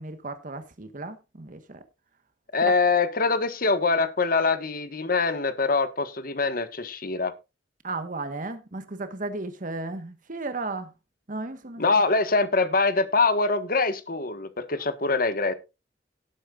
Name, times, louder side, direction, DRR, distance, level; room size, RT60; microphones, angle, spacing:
voice 1, 0.0-1.8 7.8-10.9 11.3-11.8, right 3 dB, 50° right, 1.2 m, -34 dB
voice 2, 2.5-7.3 11.8-15.5, left 3 dB, 55° left, 1.3 m, -24 dB
17.5 x 8.7 x 2.4 m
head